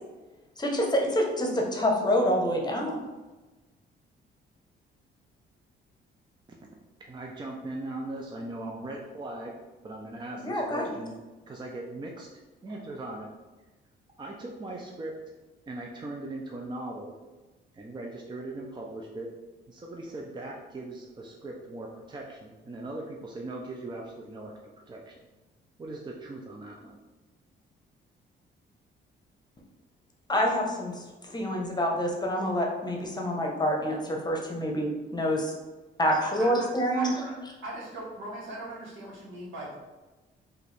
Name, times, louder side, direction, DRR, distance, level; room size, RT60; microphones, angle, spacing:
voice 1, 0.6-3.0 10.4-10.9 30.3-35.5 36.0-37.1, equal, 20° left, 0 dB, 0.9 m, -27 dB
voice 2, 6.5-9.6 9.8-11.2 11.5-12.3 12.6-13.3 14.2-15.2 15.7-17.1 17.7-19.3 19.7-24.6 24.9-25.2 25.8-27.0, right 2 dB, 25° right, 0 dB, 0.5 m, -39 dB
voice 3, 36.2-36.5 36.9-37.3 37.6-39.8, right 1 dB, 75° right, -4 dB, 1.4 m, -39 dB
4.5 x 2.6 x 3.3 m, 1.2 s
cardioid pair, 90°, 20 cm